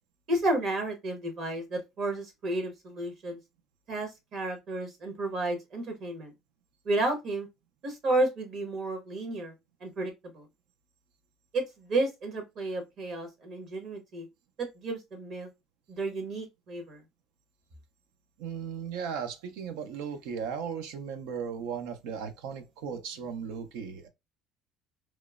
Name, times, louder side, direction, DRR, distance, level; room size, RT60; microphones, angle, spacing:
voice 1, 0.3-3.4 3.9-6.3 6.8-7.5 7.8-9.5 9.8-10.5 11.5-14.3 14.8-15.5 15.9-17.0, right 2 dB, 55° right, 1.0 m, -32 dB
voice 2, 18.4-24.1, right 7 dB, 85° right, 0.4 m, -36 dB
3.0 x 2.0 x 2.3 m
supercardioid pair, 100°, 0 cm